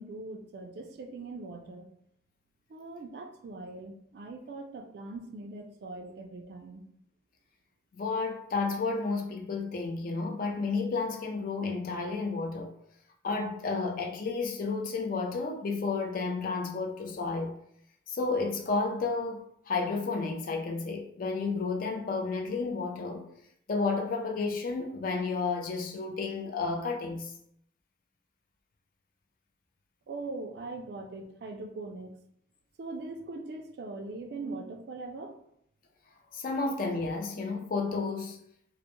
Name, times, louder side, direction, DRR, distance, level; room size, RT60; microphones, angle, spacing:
voice 1, 0.0-1.9 2.7-6.8 30.1-32.1 32.8-35.4, right 3 dB, 60° right, 0.3 m, -41 dB
voice 2, 7.9-12.7 13.2-17.5 18.1-23.2 23.7-27.3 36.3-38.4, left 4 dB, 50° left, 0.4 m, -31 dB
2.1 x 2.0 x 2.9 m
head